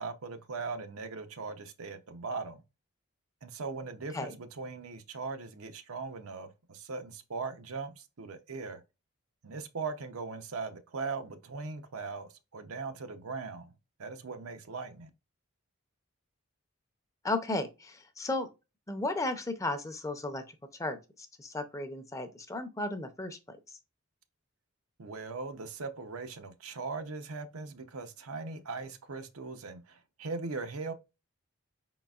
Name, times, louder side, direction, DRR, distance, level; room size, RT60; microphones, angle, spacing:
voice 1, 0.0-2.6 3.4-8.8 9.4-13.7 14.0-15.1 25.0-30.9, right 4 dB, 90° right, 0.7 m, -39 dB
voice 2, 17.2-18.5 18.9-20.4 20.8-23.6, left 2 dB, 15° left, 0.5 m, -34 dB
4.9 x 3.9 x 2.3 m
head